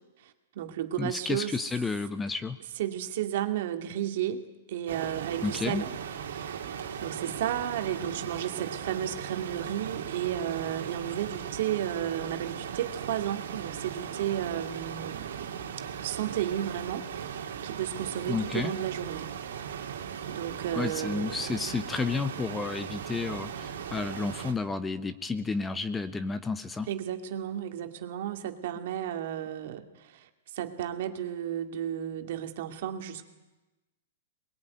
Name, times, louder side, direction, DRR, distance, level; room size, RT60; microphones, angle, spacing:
voice 1, 0.2-1.5 2.8-6.0 6.3-6.7 7.0-15.6 16.0-17.1 17.3-19.4 20.3-21.6 26.9-33.2, right 11 dB, 60° right, 6 dB, 2.4 m, -33 dB
voice 2, 1.0-2.6 5.4-5.8 18.3-18.7 20.7-26.9, left 4 dB, 10° left, 12 dB, 0.9 m, -31 dB
sound 1, 4.9-24.5, right 8 dB, 80° right, 2.8 m, -38 dB
22.5 x 21.0 x 9.5 m, 1.1 s
hypercardioid pair, 150°, 0 cm